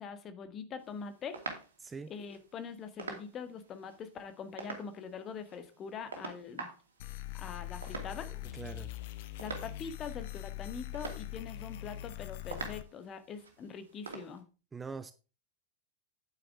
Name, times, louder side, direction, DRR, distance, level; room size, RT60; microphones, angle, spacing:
voice 1, 0.0-1.4 2.1-6.7 7.3-8.3 9.4-14.4, left 6 dB, 30° left, 1.8 m, -43 dB
sound 1, 0.8-14.4, right 4 dB, 70° right, 2.6 m, -48 dB
voice 2, 1.8-2.1 8.5-8.9 14.7-15.1, right 5 dB, 15° right, 0.6 m, -42 dB
sound 2, 7.0-12.8, left 16 dB, 50° left, 0.8 m, -42 dB
9.8 x 9.5 x 3.6 m
figure-of-eight pair, 90°, 0 cm